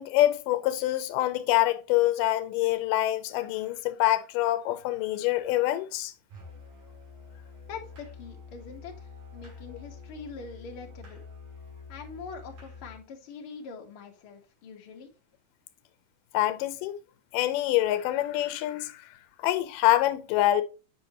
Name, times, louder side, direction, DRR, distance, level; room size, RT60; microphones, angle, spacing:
voice 1, 0.0-6.1 16.3-17.0 17.3-19.0 19.4-20.6, left 14 dB, 85° left, 2.3 m, -25 dB
Musical instrument, 6.3-13.1, left 4 dB, 85° right, 5.0 m, -47 dB
voice 2, 7.7-11.2 11.9-15.1, left 5 dB, 55° left, 1.7 m, -43 dB
8.1 x 5.2 x 2.9 m
omnidirectional pair, 3.8 m